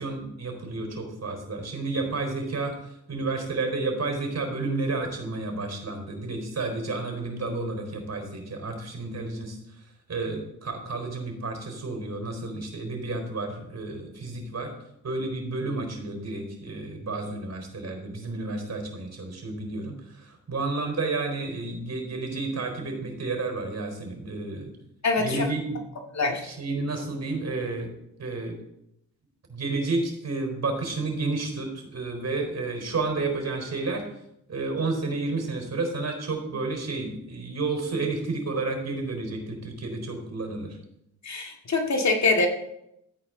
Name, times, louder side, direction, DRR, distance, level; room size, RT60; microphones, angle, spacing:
voice 1, 0.0-9.6 10.1-14.7 15.0-24.7 25.2-25.8 26.4-27.9 28.2-28.6 29.5-34.1 34.5-40.8, right 3 dB, 45° right, 4 dB, 4.1 m, -31 dB
voice 2, 25.0-25.5 26.1-26.5 41.2-42.5, left 3 dB, 45° left, 3 dB, 2.0 m, -24 dB
13.0 x 8.9 x 3.8 m, 0.79 s
supercardioid pair, 60°, 37 cm